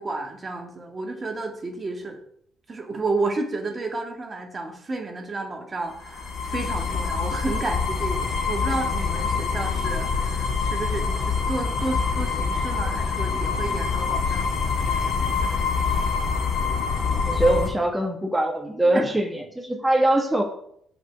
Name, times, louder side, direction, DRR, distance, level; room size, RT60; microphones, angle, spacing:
voice 1, 0.0-2.2 2.7-15.6 18.9-19.1, right 3 dB, 35° right, 3 dB, 1.7 m, -31 dB
sound 1, 5.9-17.7, left 5 dB, 70° left, 2.1 m, -25 dB
voice 2, 17.2-20.4, right 1 dB, 10° right, 2 dB, 1.4 m, -22 dB
6.5 x 4.8 x 6.9 m, 0.67 s
hypercardioid pair, 55°, 0 cm